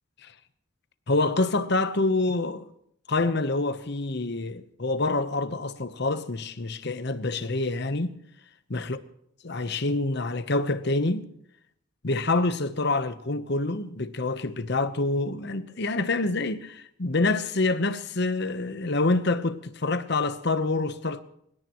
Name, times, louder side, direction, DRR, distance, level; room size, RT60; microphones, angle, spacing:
voice 1, 1.1-2.7 3.1-8.1 8.7-9.0 9.4-11.3 12.0-21.2, left 2 dB, 55° left, 1.0 m, -26 dB
26.5 x 17.5 x 3.1 m
head